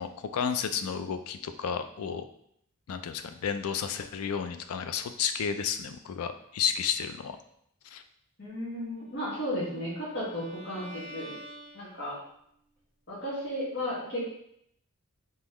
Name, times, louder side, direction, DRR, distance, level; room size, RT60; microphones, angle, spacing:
voice 1, 0.0-2.2 2.9-7.4 7.8-8.0, left 7 dB, 85° left, 9 dB, 0.4 m, -32 dB
voice 2, 8.4-11.3 11.7-12.2 13.1-14.3, equal, 55° left, -8 dB, 1.8 m, -34 dB
Bowed string instrument, 9.3-12.4, right 1 dB, 5° left, 1.6 m, -48 dB
4.2 x 3.8 x 3.0 m, 0.71 s
head